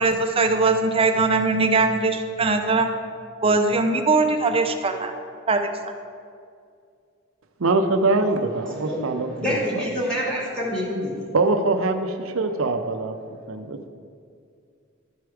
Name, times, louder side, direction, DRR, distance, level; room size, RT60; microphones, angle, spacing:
voice 1, 0.0-2.9 3.4-5.1 5.5-5.6, right 3 dB, 30° right, 5 dB, 0.6 m, -20 dB
voice 2, 7.6-10.0 11.3-13.2 13.5-13.9, right 3 dB, 80° right, 7 dB, 0.6 m, -23 dB
voice 3, 9.4-11.1, equal, 5° left, -5 dB, 2.1 m, -26 dB
12.5 x 4.7 x 4.9 m, 2.3 s
head